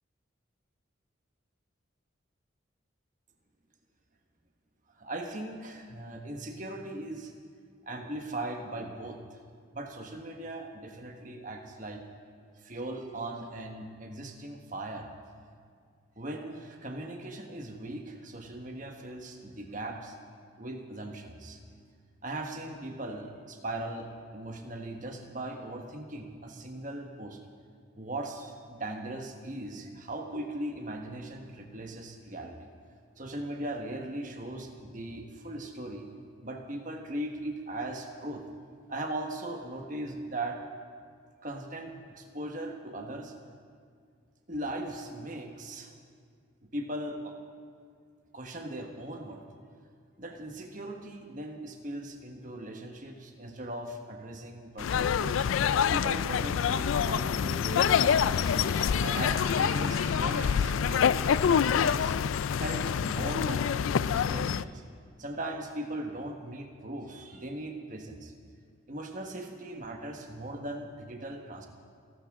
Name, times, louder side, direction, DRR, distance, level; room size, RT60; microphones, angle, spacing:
voice 1, 5.0-7.3 7.9-9.4 9.7-12.0 12.6-15.1 16.2-20.1 20.6-21.6 22.2-27.4 28.0-32.7 33.2-36.1 36.4-38.5 38.9-40.6 41.4-43.3 44.5-45.9 46.7-47.4 48.3-49.4 50.2-55.5 55.9-58.6 59.0-62.2 62.6-63.8 64.1-64.8 65.2-68.3 68.9-71.7, right 1 dB, 40° right, 3 dB, 1.4 m, -39 dB
sound 1, 54.8-64.6, left 7 dB, 80° left, 0.3 m, -26 dB
Laughter, 57.6-61.8, left 1 dB, 30° left, 3.7 m, -45 dB
30.0 x 12.5 x 3.7 m, 2.1 s
head